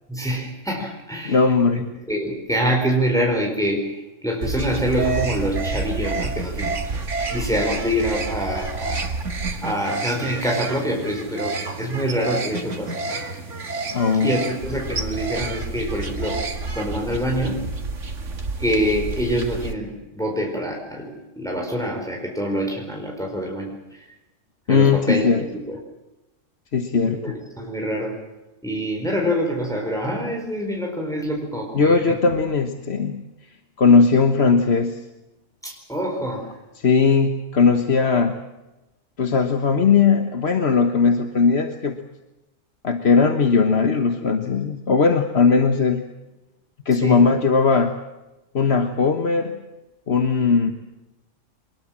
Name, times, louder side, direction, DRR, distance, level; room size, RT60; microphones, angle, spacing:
voice 1, 0.1-6.7 7.3-9.1 9.6-13.2 14.2-16.4 16.7-17.6 18.6-24.0 24.7-25.8 27.0-28.2 28.6-32.2 35.6-36.5 46.9-47.3, equal, 5° left, 1 dB, 4.6 m, -26 dB
voice 2, 1.2-1.8 13.9-14.4 24.7-25.4 26.7-27.3 31.7-33.2 33.8-35.0 36.8-38.4 39.2-42.0 42.8-46.0 46.8-47.9 48.5-49.6 50.1-50.7, left 5 dB, 55° left, 7 dB, 1.5 m, -18 dB
sound 1, 4.4-19.7, right 3 dB, 70° right, 2.2 m, -29 dB
24.5 x 21.5 x 7.5 m, 1.0 s
omnidirectional pair, 1.3 m